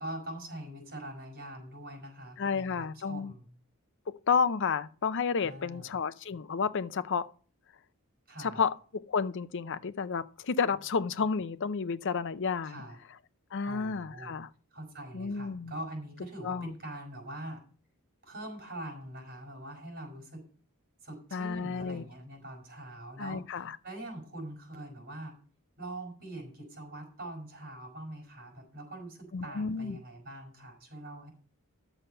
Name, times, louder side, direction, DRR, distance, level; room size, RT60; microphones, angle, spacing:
voice 1, 0.0-3.5 5.4-5.9 8.3-8.6 12.6-13.0 13.6-14.3 14.7-17.6 18.2-20.4 21.0-25.3 25.8-31.3, right 1 dB, 45° right, 5.0 m, -43 dB
voice 2, 2.4-3.3 4.3-7.3 8.4-12.8 13.5-14.5 15.1-15.7 16.4-16.7 21.3-22.0 23.2-23.8 29.3-30.0, left 5 dB, 60° left, 0.6 m, -31 dB
11.0 x 6.9 x 5.6 m
head